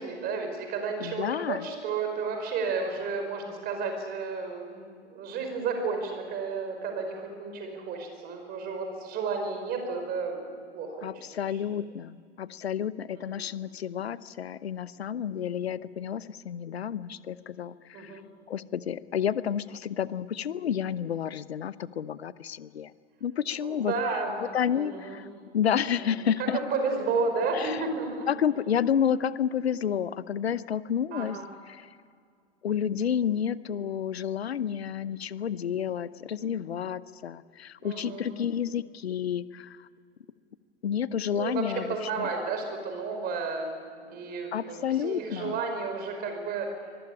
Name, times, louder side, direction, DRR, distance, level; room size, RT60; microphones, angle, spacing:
voice 1, 0.0-11.1 11.5-11.6 13.1-13.5 17.9-18.2 23.6-24.5 24.7-25.4 26.0-26.1 26.4-28.3 31.1-31.5 37.8-38.4 41.3-46.7, right 4 dB, 25° right, 5 dB, 5.2 m, -32 dB
voice 2, 1.0-1.7 11.0-18.2 18.5-22.9 23.2-23.9 24.5-25.3 25.5-26.6 27.5-27.8 28.3-31.4 31.7-31.9 32.6-39.9 40.8-42.3 44.5-45.6, left 8 dB, 65° left, 18 dB, 0.9 m, -30 dB
24.5 x 21.5 x 8.8 m, 2.1 s
figure-of-eight pair, 105°, 34 cm